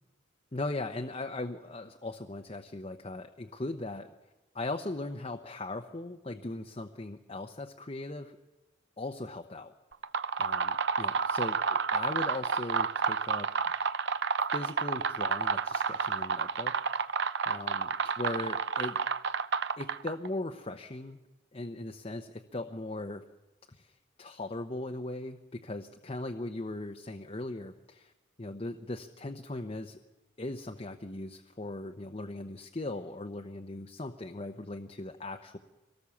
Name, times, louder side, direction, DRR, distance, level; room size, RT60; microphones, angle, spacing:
voice 1, 0.5-4.1 4.5-8.4 9.0-9.7 10.4-13.5 14.5-17.0 17.5-19.0 19.8-21.2 21.5-23.2 23.7-28.1 28.4-30.0 30.4-35.6, left 2 dB, 30° left, 4 dB, 0.8 m, -39 dB
sound 1, 9.9-20.3, right 5 dB, 55° right, 0.7 m, -30 dB
24.0 x 18.5 x 7.2 m, 1.1 s
head